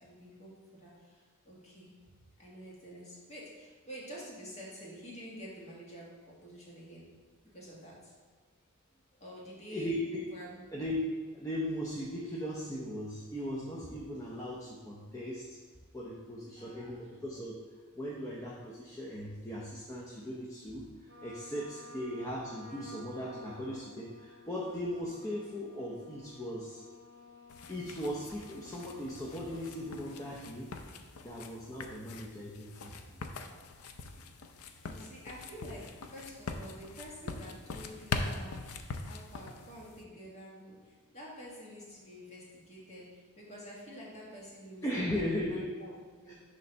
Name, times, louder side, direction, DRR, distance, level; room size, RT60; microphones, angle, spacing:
voice 1, 0.0-2.0 2.4-7.1 7.5-8.1 9.2-9.9 10.3-10.7 16.6-17.0 34.8-46.3, equal, 30° left, -5 dB, 1.7 m, -48 dB
voice 2, 9.7-10.3 10.7-15.6 15.9-17.5 17.9-26.8 27.7-30.8 31.2-33.0 44.8-45.7 46.3-46.4, equal, 15° left, -5 dB, 0.6 m, -38 dB
Trumpet, 21.1-30.4, left 2 dB, 55° right, 1.4 m, -54 dB
sound 1, 27.5-40.0, left 4 dB, 75° left, 0.5 m, -42 dB
6.6 x 3.2 x 5.5 m, 1.5 s
head